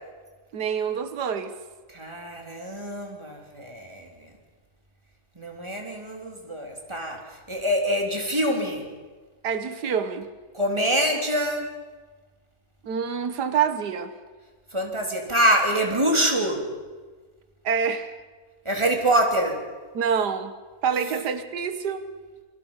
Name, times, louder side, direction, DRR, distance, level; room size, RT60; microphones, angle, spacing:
voice 1, 0.5-1.5 9.4-10.3 12.8-14.1 17.6-18.1 19.9-20.5 20.8-22.1, right 7 dB, 90° right, 10 dB, 1.8 m, -26 dB
voice 2, 1.9-4.1 5.4-7.2 7.5-8.9 10.5-11.7 14.7-16.6 18.7-19.6, right 1 dB, 15° right, 1 dB, 3.4 m, -25 dB
28.0 x 23.5 x 5.6 m, 1.4 s
omnidirectional pair, 1.7 m